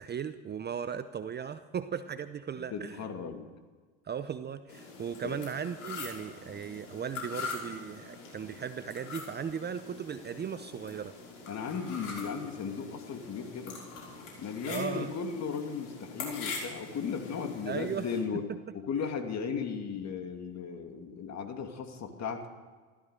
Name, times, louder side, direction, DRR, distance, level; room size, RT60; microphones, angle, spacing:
voice 1, 0.0-3.1 4.0-11.1 14.7-15.1 17.7-18.1, right 7 dB, 25° right, 11 dB, 0.7 m, -37 dB
voice 2, 2.6-3.5 5.2-5.4 11.5-13.8 14.4-18.5 18.7-22.5, left 6 dB, 40° left, 5 dB, 2.6 m, -36 dB
sound 1, 4.7-18.2, left 4 dB, 70° left, 6.1 m, -43 dB
15.5 x 14.0 x 6.6 m, 1.5 s
hypercardioid pair, 85°, 42 cm